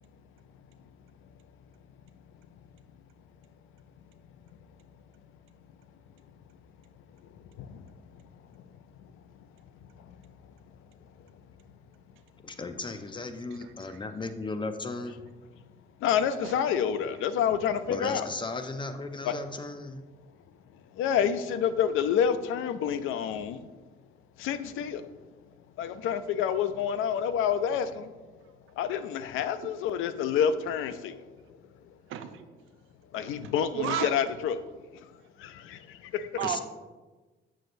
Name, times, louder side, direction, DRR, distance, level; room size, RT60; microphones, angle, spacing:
voice 1, 12.4-15.2 17.9-20.0 36.4-36.6, left 3 dB, 25° left, 8 dB, 0.6 m, -35 dB
voice 2, 13.5-14.0 16.4-16.6 32.1-32.5 33.7-34.1 36.4-36.6, right 9 dB, 85° right, 9 dB, 0.6 m, -33 dB
voice 3, 16.0-18.3 19.2-19.4 21.0-23.6 24.4-25.1 25.8-27.8 28.8-31.1 33.1-34.6 35.4-35.8 36.1-36.4, left 8 dB, 90° left, 12 dB, 0.4 m, -28 dB
7.7 x 6.3 x 2.6 m, 1.2 s
cardioid pair, 90°, 20 cm